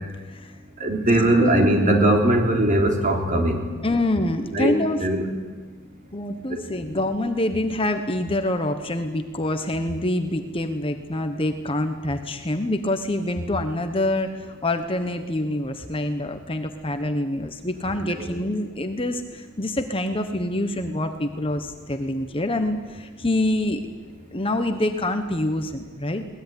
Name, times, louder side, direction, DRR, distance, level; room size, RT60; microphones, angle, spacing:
voice 1, 0.8-3.6 4.5-4.7 5.0-5.2 6.5-6.9 18.0-18.2, right 1 dB, 35° right, 2 dB, 3.5 m, -20 dB
voice 2, 3.8-5.0 6.1-23.8 24.3-26.2, left 1 dB, 25° left, 7 dB, 1.1 m, -26 dB
22.0 x 19.0 x 9.9 m, 1.4 s
head